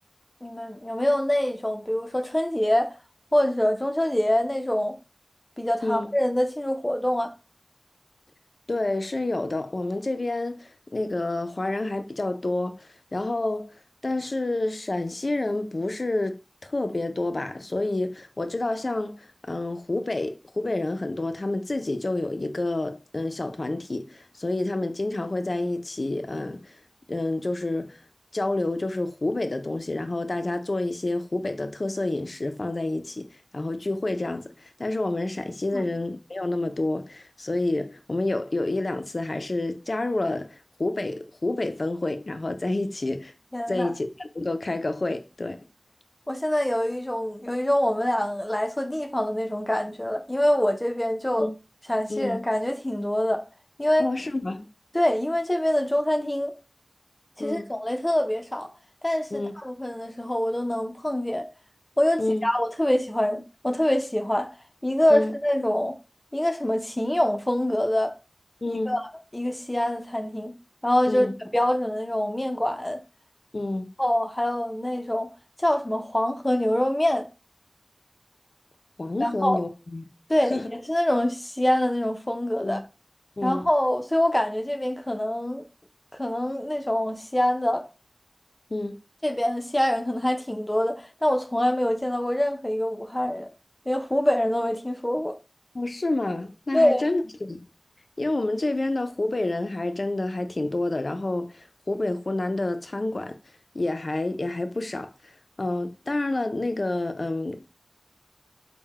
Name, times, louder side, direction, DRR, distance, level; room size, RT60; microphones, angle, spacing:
voice 1, 0.4-3.0 3.3-5.0 5.6-7.3 35.7-35.9 43.5-43.9 46.3-51.5 51.9-53.5 53.8-54.1 54.9-56.5 57.4-58.7 59.0-61.5 62.0-64.6 64.8-66.0 66.3-68.2 68.7-69.0 69.3-70.5 70.8-71.3 71.5-73.0 74.0-75.3 75.6-77.3 79.2-79.6 80.3-82.8 83.4-85.6 86.1-87.9 89.2-93.5 93.9-95.3 96.7-97.0, left 1 dB, 25° left, 0.6 m, -25 dB
voice 2, 8.7-13.7 14.0-26.8 27.1-28.0 28.3-43.3 43.7-45.6 51.4-51.5 52.1-52.4 54.0-54.7 57.4-57.7 59.3-59.5 62.2-62.4 65.1-65.3 68.6-69.0 71.1-71.3 73.5-73.9 79.0-80.0 80.5-80.7 82.6-82.8 83.4-83.6 88.7-89.0 95.7-97.7 98.2-103.4 103.7-105.3 105.6-107.7, left 2 dB, 70° left, 0.4 m, -29 dB
3.8 x 2.1 x 4.1 m
wide cardioid pair, 40°, 0 cm